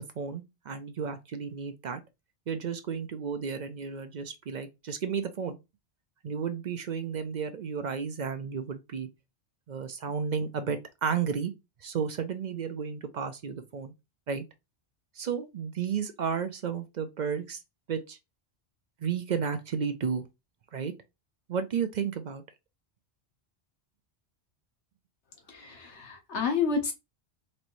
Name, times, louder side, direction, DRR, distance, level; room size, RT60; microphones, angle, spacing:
voice 1, 0.0-2.0 2.5-5.6 6.2-9.1 9.7-11.5 11.8-13.9 14.3-14.4 15.2-17.6 17.9-18.2 19.0-20.2 20.7-20.9 21.5-22.4, right 6 dB, 55° right, 0.5 m, -32 dB
voice 2, 25.5-26.9, left 5 dB, 80° left, 1.3 m, -30 dB
4.2 x 3.0 x 2.6 m
omnidirectional pair, 1.1 m